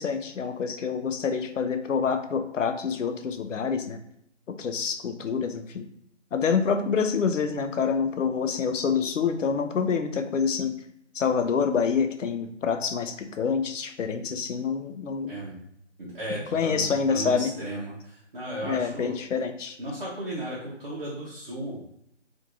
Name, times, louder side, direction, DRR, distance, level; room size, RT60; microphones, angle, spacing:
voice 1, 0.0-4.0 4.5-5.9 6.3-10.7 11.1-15.3 16.3-17.5 18.6-19.8, left 6 dB, 85° left, 7 dB, 0.5 m, -27 dB
voice 2, 16.0-19.1 19.8-21.8, right 1 dB, 45° right, -7 dB, 0.7 m, -35 dB
2.6 x 2.5 x 2.8 m, 0.73 s
figure-of-eight pair, 165°, 36 cm